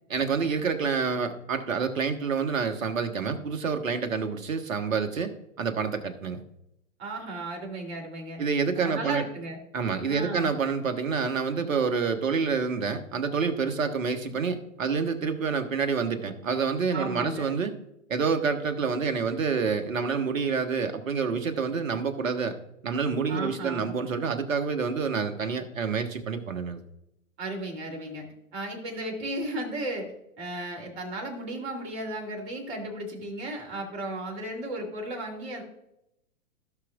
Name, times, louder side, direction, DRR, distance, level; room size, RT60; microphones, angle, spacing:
voice 1, 0.1-5.3 5.6-6.4 8.4-9.2 9.7-17.7 18.1-22.6 22.8-26.8, right 5 dB, 70° right, 7 dB, 1.5 m, -28 dB
voice 2, 7.0-8.4 8.8-9.6 10.1-10.5 16.9-17.5 23.3-24.0 27.4-28.3 28.5-35.6, right 1 dB, 50° right, 1 dB, 3.1 m, -35 dB
16.5 x 6.3 x 2.4 m, 0.82 s
figure-of-eight pair, 110°, 41 cm